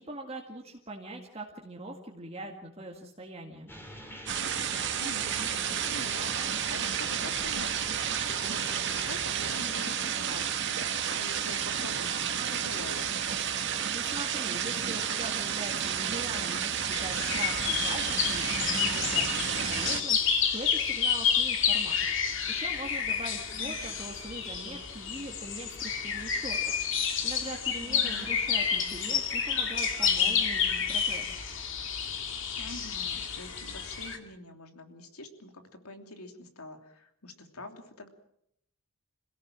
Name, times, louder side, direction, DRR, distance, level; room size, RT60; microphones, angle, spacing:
voice 1, 0.0-3.7 13.9-22.0 22.5-26.6 27.2-31.4, right 1 dB, 25° right, 0 dB, 2.0 m, -42 dB
sound 1, 3.7-9.6, equal, 10° left, 3.2 m, -45 dB
sound 2, 4.3-20.0, right 8 dB, 50° right, 2.0 m, -31 dB
voice 2, 4.9-13.1 23.5-23.8 27.8-28.4 32.6-38.1, left 2 dB, 80° left, 5 dB, 3.1 m, -46 dB
sound 3, 16.9-34.2, left 7 dB, 55° left, 2.5 m, -30 dB
27.5 x 17.0 x 7.5 m, 0.75 s
head